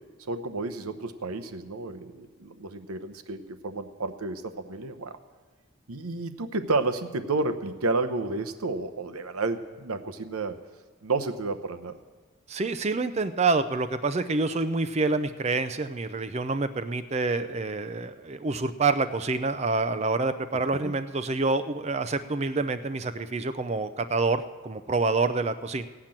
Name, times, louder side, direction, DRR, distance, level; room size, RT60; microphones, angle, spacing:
voice 1, 0.2-5.2 5.9-10.6 11.0-12.0 20.5-21.0, right 3 dB, 90° right, 9 dB, 0.9 m, -31 dB
voice 2, 12.5-25.9, right 3 dB, 30° right, 11 dB, 0.4 m, -27 dB
17.0 x 5.9 x 8.8 m, 1.4 s
head